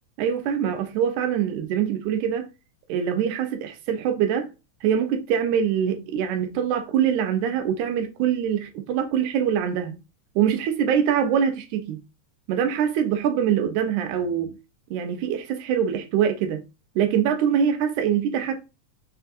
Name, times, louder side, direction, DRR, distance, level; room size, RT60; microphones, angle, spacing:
voice 1, 0.2-2.5 2.9-4.5 4.8-10.0 10.4-12.0 12.5-14.6 14.9-16.6 17.0-18.7, right 8 dB, 85° right, 2.1 m, -24 dB
5.5 x 3.5 x 2.5 m
omnidirectional pair, 3.4 m